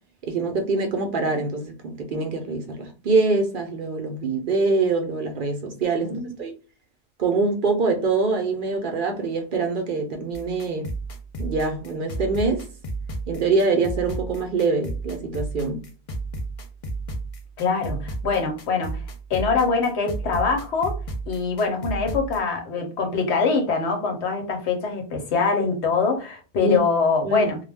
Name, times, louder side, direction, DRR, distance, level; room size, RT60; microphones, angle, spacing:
voice 1, 0.2-6.5 7.2-10.9 11.4-12.6 13.3-15.8 26.6-26.8 27.2-27.5, right 3 dB, 60° right, 0.7 m, -24 dB
voice 2, 6.0-6.3 17.6-19.0 19.3-21.0 21.3-27.6, left 4 dB, 85° left, 1.0 m, -23 dB
sound 1, 10.3-22.4, right 2 dB, 55° left, 0.4 m, -33 dB
2.3 x 2.1 x 3.3 m
omnidirectional pair, 1.1 m